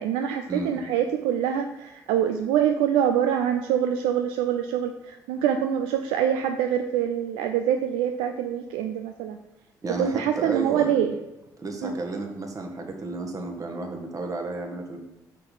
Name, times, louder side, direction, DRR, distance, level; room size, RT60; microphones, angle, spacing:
voice 1, 0.0-9.4 10.0-11.2 11.8-11.9, right 9 dB, 65° right, 6 dB, 0.4 m, -25 dB
voice 2, 9.8-10.9 11.6-15.0, right 2 dB, 35° right, 3 dB, 1.4 m, -32 dB
6.1 x 5.9 x 3.9 m, 0.99 s
figure-of-eight pair, 45°, 10 cm